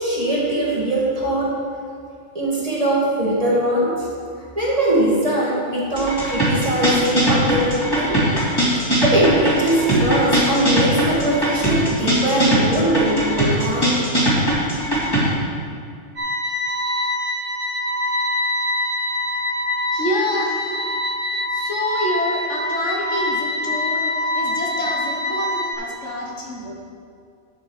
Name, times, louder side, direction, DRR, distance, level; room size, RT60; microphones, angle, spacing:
voice 1, 0.0-1.5 2.3-4.1 4.6-8.2 8.7-13.9, right 1 dB, 30° right, -6 dB, 2.0 m, -21 dB
sound 1, 6.0-15.3, right 1 dB, 15° left, 2.7 m, -20 dB
sound 2, 16.2-25.7, left 1 dB, 70° right, 1.9 m, -24 dB
voice 2, 19.9-20.8 21.5-26.7, left 1 dB, 65° left, -2 dB, 1.7 m, -27 dB
11.0 x 6.5 x 4.8 m, 2.3 s
omnidirectional pair, 1.3 m